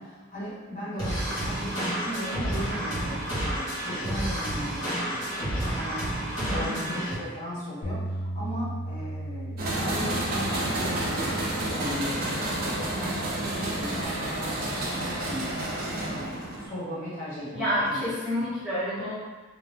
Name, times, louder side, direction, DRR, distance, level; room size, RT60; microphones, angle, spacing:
voice 1, 0.0-11.4 11.6-15.7 16.0-18.0 18.3-18.5, equal, 35° left, -14 dB, 1.4 m, -37 dB
sound 1, 1.0-7.1, right 1 dB, 80° left, 1.3 m, -30 dB
voice 2, 6.4-6.9 17.5-19.2, equal, ahead, -11 dB, 0.8 m, -29 dB
Bass guitar, 7.8-14.1, right 1 dB, 55° left, 0.5 m, -37 dB
sound 2, 9.6-16.7, right 1 dB, 40° right, 0.5 m, -30 dB
2.8 x 2.0 x 3.3 m, 1.3 s
head